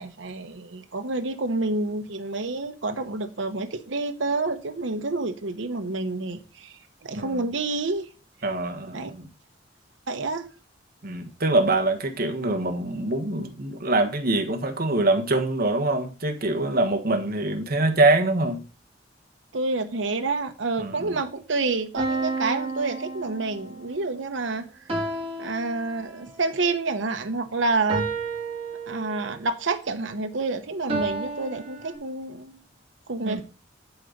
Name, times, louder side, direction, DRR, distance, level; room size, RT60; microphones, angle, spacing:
voice 1, 0.0-8.1 8.9-9.1 10.1-10.4 19.5-24.7 25.4-28.1 28.9-32.6 33.1-33.4, right 3 dB, 75° right, 1.0 m, -28 dB
voice 2, 7.1-7.5 8.4-9.3 11.0-18.6 20.8-21.2 33.2-33.4, right 2 dB, 55° right, 1.4 m, -24 dB
sound 1, 22.0-23.8 24.9-26.4 27.9-29.4 30.9-31.9, right 3 dB, 30° right, 3.4 m, -31 dB
11.0 x 4.1 x 5.2 m
head